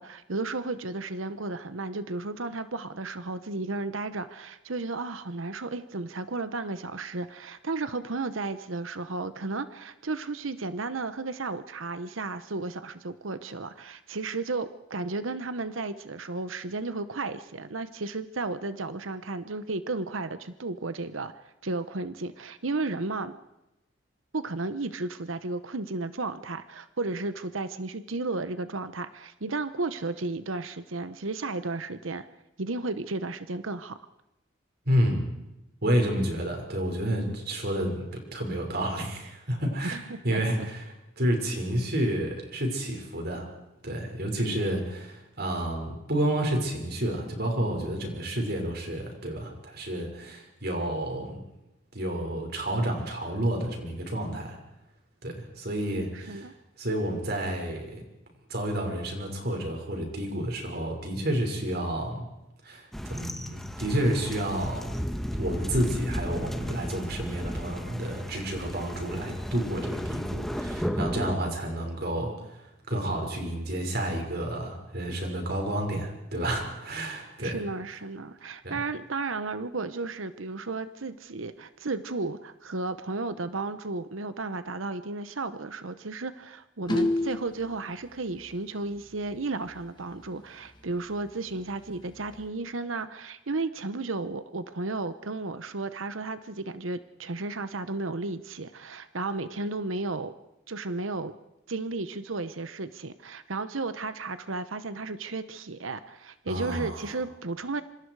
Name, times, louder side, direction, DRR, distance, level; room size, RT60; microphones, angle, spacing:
voice 1, 0.0-21.3 21.6-23.4 24.3-32.2 32.6-34.0 39.8-40.0 40.3-40.7 44.5-44.6 56.1-56.5 77.4-100.3 100.7-101.3 101.7-107.8, right 3 dB, 90° right, 12 dB, 1.0 m, -33 dB
voice 2, 34.9-35.2 35.8-40.8 41.2-43.5 43.8-51.4 51.9-54.6 55.2-56.5 56.8-58.0 58.5-62.2 62.6-65.0 65.4-72.6 72.9-77.6 78.6-78.7 106.5-107.1, right 1 dB, 55° right, 2 dB, 5.8 m, -30 dB
sound 1, 62.9-71.3, equal, ahead, 1.4 m, -34 dB
sound 2, 86.9-87.6 89.3-89.4 89.7-89.8 90.2-90.3 90.8-90.9 91.7-92.5, left 1 dB, 25° left, 1.8 m, -28 dB
27.0 x 25.5 x 4.8 m, 0.93 s
head